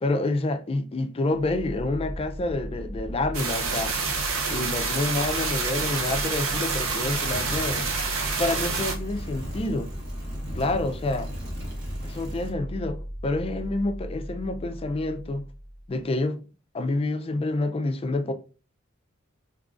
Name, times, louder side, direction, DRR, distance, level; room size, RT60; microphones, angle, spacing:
voice 1, 0.0-3.9 4.5-7.9 8.4-9.9 10.5-11.3 12.0-15.5 15.9-16.4 16.7-18.3, left 2 dB, 30° left, 0.3 m, -28 dB
sound 1, 1.3-16.1, equal, 15° right, 1.0 m, -37 dB
sound 2, 3.3-8.9, right 4 dB, 85° right, 0.6 m, -28 dB
sound 3, 7.3-12.5, equal, 55° right, 1.2 m, -40 dB
3.6 x 2.9 x 2.4 m
head